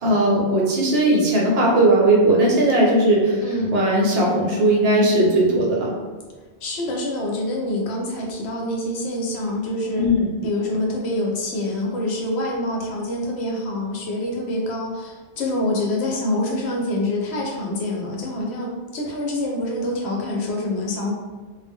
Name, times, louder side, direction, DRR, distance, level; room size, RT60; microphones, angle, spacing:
voice 1, 0.0-3.4 3.7-5.9 10.0-10.2, right 1 dB, 65° right, -3 dB, 0.8 m, -18 dB
voice 2, 3.4-3.7 6.6-10.1 10.4-21.1, left 1 dB, 70° left, -1 dB, 0.8 m, -26 dB
2.0 x 2.0 x 3.4 m, 1.4 s
omnidirectional pair, 1.2 m